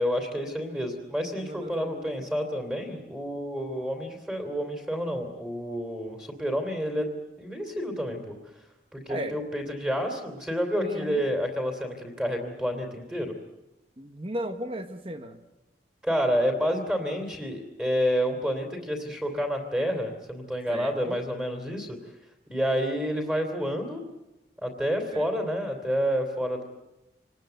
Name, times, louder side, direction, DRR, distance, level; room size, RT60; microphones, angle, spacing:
voice 1, 0.0-8.3 8.9-13.3 16.0-22.0 22.5-24.0 24.6-26.6, equal, 5° right, 4 dB, 3.0 m, -29 dB
voice 2, 1.4-2.3 9.1-9.4 10.8-11.3 14.0-15.4 20.7-21.2 25.1-25.5, right 1 dB, 30° right, 8 dB, 1.1 m, -36 dB
26.5 x 19.0 x 8.0 m, 0.98 s
head